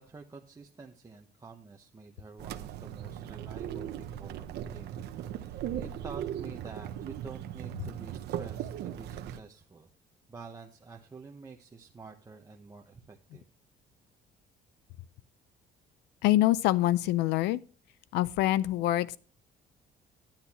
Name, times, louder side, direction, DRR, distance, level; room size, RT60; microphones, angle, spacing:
voice 1, 0.0-9.9 10.3-13.4, right 4 dB, 20° right, 1.0 m, -49 dB
sound 1, 2.4-9.4, right 10 dB, 75° right, 0.9 m, -38 dB
voice 2, 16.2-17.6 18.1-19.2, left 15 dB, 90° left, 0.5 m, -25 dB
11.5 x 10.5 x 3.0 m
cardioid pair, 110°, 17 cm